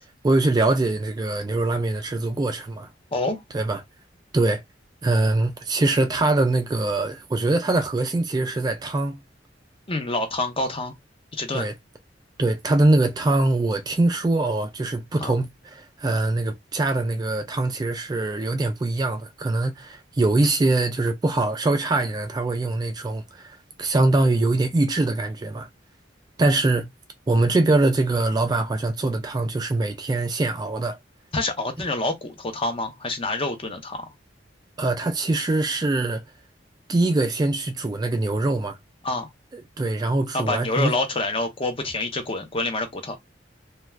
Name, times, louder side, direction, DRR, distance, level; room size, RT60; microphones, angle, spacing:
voice 1, 0.2-2.9 3.5-3.8 4.3-4.6 5.0-9.2 11.5-11.7 12.4-25.7 26.4-26.9 27.3-31.0 34.8-36.2 36.9-38.8 39.5-41.0, right 2 dB, 20° right, 0.3 m, -23 dB
voice 2, 3.1-3.4 9.9-10.9 11.3-11.7 15.2-15.3 31.3-34.1 39.0-39.3 40.3-43.2, left 2 dB, 30° left, 0.7 m, -27 dB
2.3 x 2.3 x 3.2 m
head